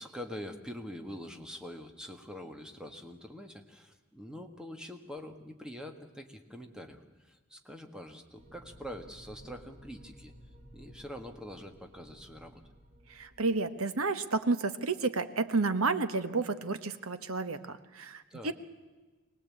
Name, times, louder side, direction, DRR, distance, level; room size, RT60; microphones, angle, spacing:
voice 1, 0.0-10.3 10.7-12.6 18.3-18.5, equal, 5° right, 4 dB, 1.7 m, -45 dB
sound 1, 8.4-13.5, equal, 35° right, 4.0 m, -55 dB
voice 2, 13.1-18.5, right 3 dB, 65° right, 11 dB, 1.2 m, -31 dB
24.5 x 18.0 x 8.6 m, 1.3 s
head